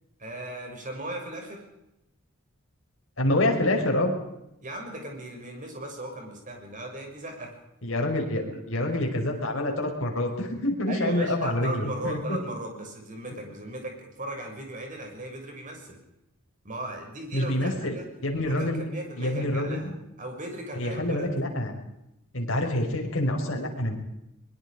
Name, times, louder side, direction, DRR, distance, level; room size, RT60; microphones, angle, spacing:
voice 1, 0.2-1.6 4.6-7.6 8.4-8.6 10.9-16.0 16.6-18.1 18.5-19.9 20.2-21.3, right 1 dB, 35° right, 2 dB, 6.7 m, -37 dB
voice 2, 3.2-4.1 7.8-8.4 8.7-12.4 17.3-18.8 19.2-19.9 20.8-21.7 22.3-23.9, left 1 dB, 60° left, 2 dB, 5.5 m, -27 dB
23.0 x 22.5 x 5.1 m, 0.88 s
head